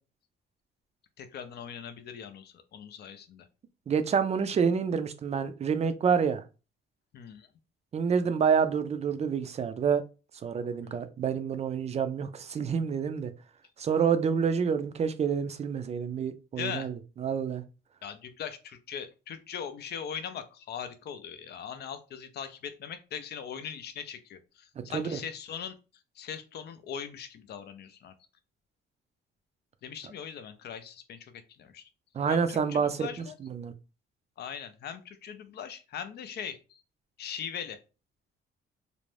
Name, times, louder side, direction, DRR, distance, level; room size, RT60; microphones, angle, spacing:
voice 1, 1.2-3.5 7.1-7.5 10.8-11.0 16.6-16.9 18.0-25.7 26.2-28.1 29.8-31.8 32.3-33.4 34.4-36.8 37.2-37.8, left 8 dB, 55° left, 0.4 m, -40 dB
voice 2, 3.9-6.4 7.9-10.0 10.4-13.3 13.8-17.6 24.8-25.2 32.1-33.7, right 6 dB, 35° right, 0.4 m, -28 dB
2.5 x 2.1 x 3.1 m
cardioid pair, 90°, 20 cm